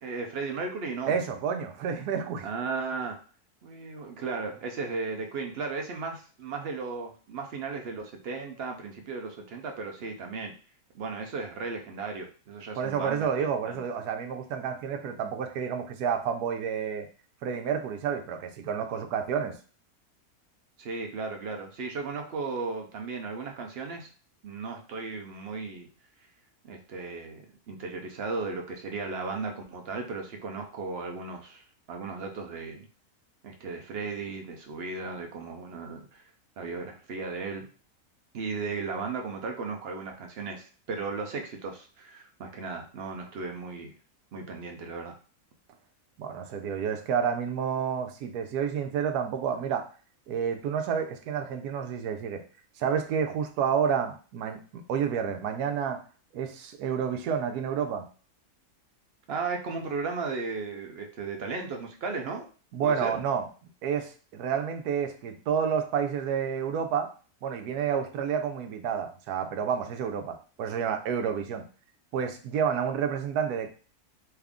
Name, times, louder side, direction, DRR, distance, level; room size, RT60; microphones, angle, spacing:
voice 1, 0.0-1.2 2.4-3.2 3.6-10.5 10.9-13.8 20.8-24.1 24.4-25.9 26.6-32.9 33.4-36.2 36.6-37.7 38.3-43.9 44.3-45.1 59.3-62.5 62.8-63.1, right 4 dB, 60° right, 3 dB, 0.7 m, -35 dB
voice 2, 1.1-2.5 12.8-17.1 17.4-19.6 46.2-49.8 50.3-52.4 52.8-56.0 56.3-58.1 62.7-63.5 63.8-67.1 67.4-71.7 72.1-73.7, right 7 dB, 90° right, 6 dB, 1.1 m, -29 dB
3.4 x 2.4 x 3.5 m, 0.38 s
omnidirectional pair, 1.6 m